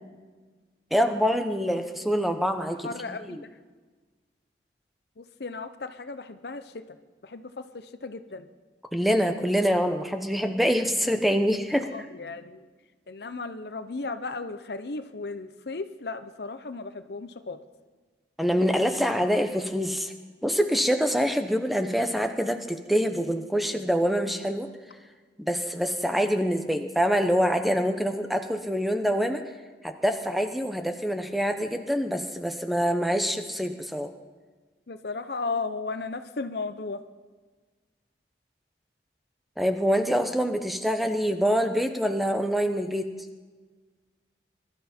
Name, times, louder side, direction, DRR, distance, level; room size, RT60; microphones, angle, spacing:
voice 1, 0.9-3.4 8.9-11.9 18.4-20.1 20.4-24.7 25.4-29.4 29.8-34.1 39.6-43.1, equal, ahead, 6 dB, 0.8 m, -25 dB
voice 2, 2.6-3.5 5.2-6.8 7.2-8.5 11.8-12.7 13.1-17.6 34.9-37.0, left 3 dB, 65° left, 11 dB, 0.7 m, -35 dB
21.5 x 12.5 x 4.4 m, 1.4 s
head